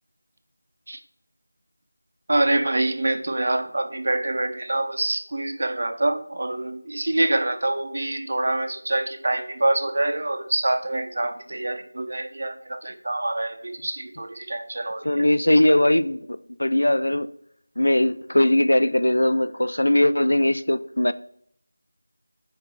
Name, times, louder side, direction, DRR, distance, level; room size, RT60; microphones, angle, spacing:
voice 1, 2.3-15.1, right 2 dB, 50° right, 0.7 m, -25 dB
voice 2, 15.0-17.3 17.8-21.1, left 1 dB, 75° left, 0.4 m, -20 dB
4.9 x 4.6 x 4.2 m
figure-of-eight pair, 170°, 0 cm